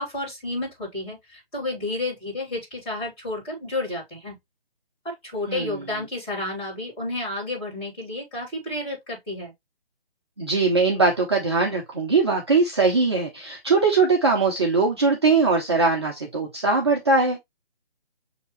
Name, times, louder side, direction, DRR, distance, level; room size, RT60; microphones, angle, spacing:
voice 1, 0.0-4.4 5.0-9.5, left 2 dB, 10° left, 2.7 m, -31 dB
voice 2, 5.5-5.8 10.4-17.4, right 4 dB, 25° right, 0.6 m, -21 dB
6.4 x 2.8 x 3.0 m
figure-of-eight pair, 150°, 31 cm